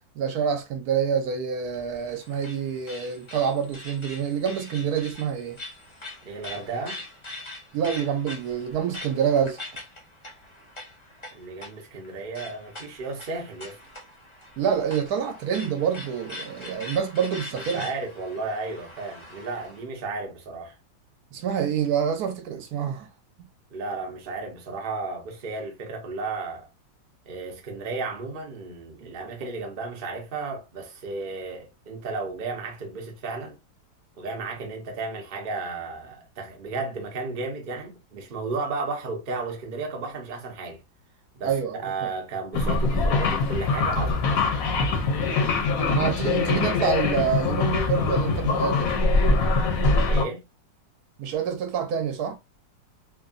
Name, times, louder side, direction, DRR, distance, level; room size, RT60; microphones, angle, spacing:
voice 1, 0.1-5.6 7.7-9.6 14.6-17.9 21.3-23.1 41.4-42.1 45.9-48.9 51.2-52.4, right 7 dB, 70° right, 1.0 m, -27 dB
sound 1, 1.7-19.8, left 2 dB, 50° left, 0.3 m, -43 dB
voice 2, 6.2-7.0 11.3-13.8 17.5-20.8 23.7-26.7 27.3-33.6 34.2-40.8 41.3-41.6 41.8-44.4 45.2-45.6 50.1-50.4, right 3 dB, 85° right, 0.4 m, -33 dB
sound 2, 42.5-50.2, left 3 dB, 70° left, 0.8 m, -23 dB
3.1 x 2.2 x 2.4 m
omnidirectional pair, 2.0 m